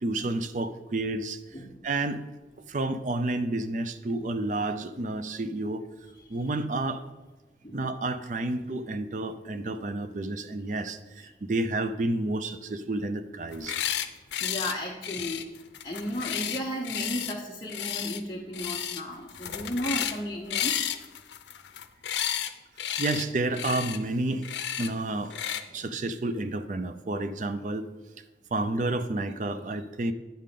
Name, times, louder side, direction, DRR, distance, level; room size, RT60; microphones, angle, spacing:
voice 1, 0.0-1.4 1.8-2.2 2.7-5.9 6.3-7.0 7.7-13.8 23.0-24.5 24.8-25.3 25.7-27.9 28.5-30.1, right 2 dB, 45° right, 11 dB, 0.4 m, -30 dB
sound 1, 13.5-14.1 14.3-14.7 15.0-17.3 17.7-18.2 18.5-19.0 19.3-20.2 20.5-22.5 22.8-23.3 23.5-24.0 24.4-24.9 25.3-25.6, left 10 dB, 85° left, 0.5 m, -32 dB
voice 2, 14.4-15.4 15.8-20.8, equal, 25° left, -3 dB, 0.8 m, -34 dB
9.3 x 3.7 x 6.7 m, 1.2 s
head